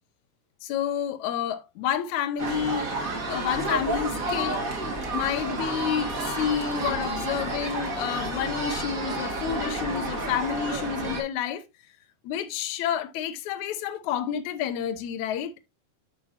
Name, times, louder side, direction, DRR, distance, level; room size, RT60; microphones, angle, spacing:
voice 1, 0.6-2.9 3.3-4.6 5.1-11.6 12.2-15.6, left 9 dB, 70° left, 2.0 m, -29 dB
sound 1, 2.4-11.2, right 2 dB, 30° right, 1.6 m, -30 dB
9.4 x 6.1 x 2.7 m
omnidirectional pair, 4.2 m